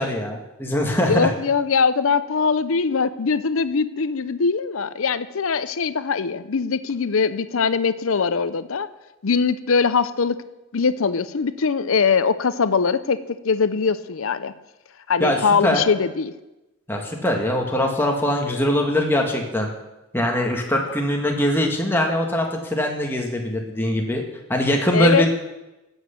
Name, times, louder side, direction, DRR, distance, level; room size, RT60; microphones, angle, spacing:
voice 1, 0.0-1.3 15.2-15.8 16.9-19.7 20.1-24.2 24.5-25.3, left 1 dB, 10° left, 1 dB, 1.6 m, -22 dB
voice 2, 1.0-8.9 9.2-10.4 10.7-14.5 15.1-16.3 24.9-25.3, left 5 dB, 70° left, 14 dB, 0.6 m, -21 dB
9.4 x 8.1 x 8.2 m, 1.0 s
head